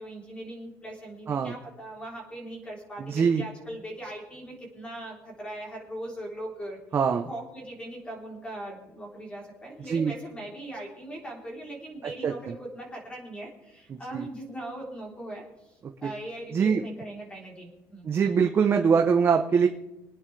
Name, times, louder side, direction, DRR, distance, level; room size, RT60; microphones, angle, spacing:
voice 1, 0.0-6.8 7.2-18.1, right 1 dB, 15° left, -2 dB, 3.7 m, -40 dB
voice 2, 3.0-3.4 6.9-7.3 9.8-10.1 12.2-12.5 13.9-14.3 15.8-16.1 16.5-16.8 18.0-19.7, right 6 dB, 30° right, 3 dB, 0.8 m, -23 dB
25.0 x 9.6 x 3.4 m, 0.94 s
cardioid pair, 155°, 8 cm